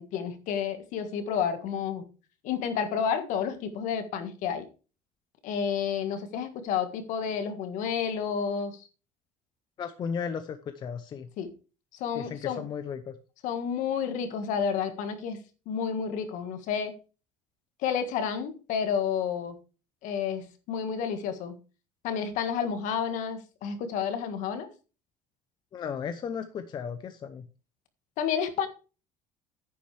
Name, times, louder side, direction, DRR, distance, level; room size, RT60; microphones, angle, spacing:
voice 1, 0.0-2.0 2.4-4.6 5.4-8.9 11.4-11.5 11.9-12.6 13.4-15.4 15.6-16.9 17.8-19.6 20.0-21.6 22.0-24.7 28.2-28.7, left 7 dB, 60° left, 9 dB, 1.6 m, -30 dB
voice 2, 9.8-11.3 12.1-13.0 25.7-27.5, left 7 dB, 30° left, 9 dB, 0.6 m, -35 dB
10.0 x 8.6 x 3.3 m, 0.34 s
cardioid pair, 155°, 15 cm